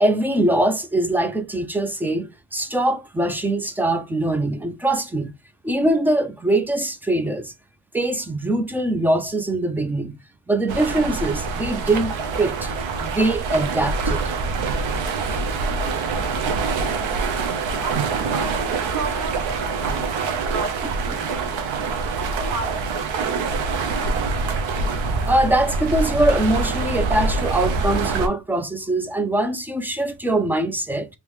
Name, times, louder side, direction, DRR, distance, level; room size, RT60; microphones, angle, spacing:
voice 1, 0.0-5.3 5.6-7.5 7.9-10.2 10.5-12.7 13.0-14.2 25.3-31.1, right 1 dB, 5° right, 0.5 m, -22 dB
sound 1, 10.7-28.3, right 4 dB, 85° right, 1.0 m, -25 dB
voice 2, 17.8-21.6 22.1-24.5, right 4 dB, 45° right, 1.5 m, -35 dB
3.6 x 3.1 x 3.0 m
cardioid pair, 140°, 45 cm